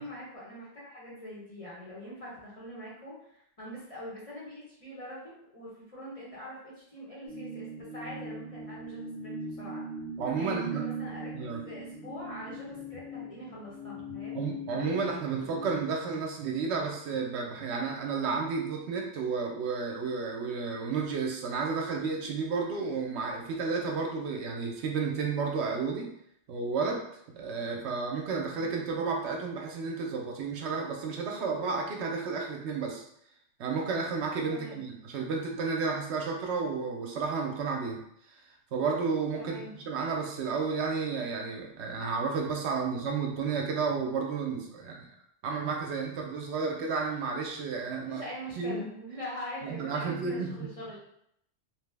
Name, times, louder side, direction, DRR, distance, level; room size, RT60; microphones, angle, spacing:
voice 1, 0.0-5.2 5.5-7.7 7.9-9.8 10.3-14.3 28.5-28.8 34.5-34.8 39.4-39.8 48.1-51.0, equal, 35° left, -7 dB, 0.9 m, -43 dB
sound 1, 7.3-15.9, right 1 dB, 75° left, 1.4 m, -40 dB
voice 2, 10.2-10.8 11.3-11.6 14.3-26.1 26.5-27.0 27.3-33.0 33.6-38.0 38.7-45.0 45.4-48.2 48.6-48.8 49.6-50.7, right 5 dB, 75° right, 1 dB, 0.8 m, -32 dB
2.9 x 2.0 x 3.2 m, 0.72 s
omnidirectional pair, 1.2 m